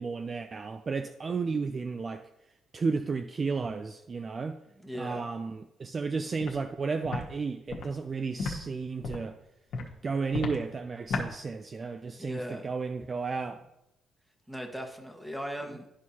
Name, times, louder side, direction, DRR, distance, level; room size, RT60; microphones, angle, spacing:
voice 1, 0.0-2.2 2.7-4.6 4.9-9.4 10.0-13.6, right 4 dB, 35° right, 8 dB, 0.4 m, -33 dB
voice 2, 4.8-5.3 12.2-12.6 14.5-15.9, equal, 5° right, 2 dB, 1.4 m, -38 dB
Walk footsteps, 6.4-6.5 7.0-7.2 7.7-7.8 8.4-8.5 9.0-9.3 9.7-9.9 10.3-10.6 11.1-11.3, left 4 dB, 80° left, 1.3 m, -32 dB
12.5 x 4.5 x 2.8 m, 0.89 s
cardioid pair, 90°, 0 cm